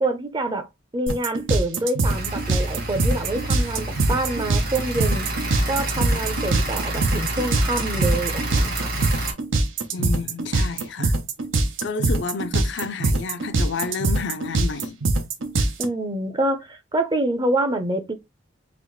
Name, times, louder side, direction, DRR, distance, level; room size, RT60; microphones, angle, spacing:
voice 1, 0.0-0.7 0.9-5.3 5.7-8.9 15.8-18.1, right 2 dB, 25° right, 0.6 m, -26 dB
sound 1, 1.1-15.8, right 2 dB, 80° right, 0.8 m, -22 dB
sound 2, 2.0-9.3, right 1 dB, 50° right, 1.4 m, -29 dB
voice 2, 9.9-11.1 11.8-15.0, left 4 dB, 60° left, 0.5 m, -30 dB
4.1 x 2.9 x 3.1 m
head